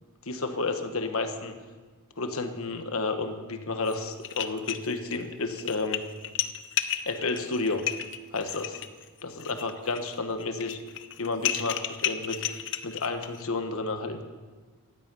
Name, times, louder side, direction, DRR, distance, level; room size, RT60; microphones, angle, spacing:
voice 1, 0.2-1.5 2.2-6.0 7.0-7.8 8.3-8.8 9.2-10.8 11.2-12.4 12.8-14.2, left 3 dB, 80° left, 7 dB, 1.4 m, -31 dB
sound 1, 3.9-4.0 4.2-5.2 5.5-13.4, left 10 dB, 55° left, 0.7 m, -33 dB
16.5 x 12.5 x 5.5 m, 1.4 s
head